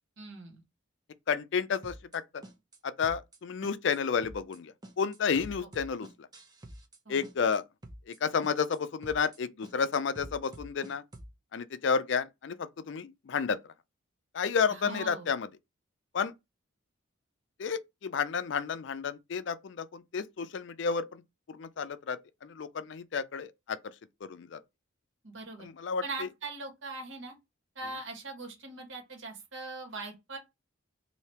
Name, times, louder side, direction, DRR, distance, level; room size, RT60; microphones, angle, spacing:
voice 1, 0.2-0.6 5.6-5.7 7.0-7.2 14.7-15.3 25.2-25.7 26.0-27.3 27.7-30.4, right 3 dB, 70° right, 1.6 m, -41 dB
voice 2, 1.3-2.4 2.8-6.3 7.1-7.6 8.1-11.0 11.5-13.6 14.3-15.5 16.1-16.3 17.6-21.2 21.5-23.8 24.2-24.6 25.6-26.3, left 6 dB, 60° left, 0.4 m, -31 dB
sound 1, 1.8-2.2 2.4-2.8 3.0-3.4 3.6-4.0 4.2-4.6 4.8-7.0 7.2-7.6 7.8-8.2 8.4-8.8 9.0-9.4 9.6-11.3, right 1 dB, 20° right, 0.7 m, -47 dB
3.3 x 2.7 x 4.3 m
head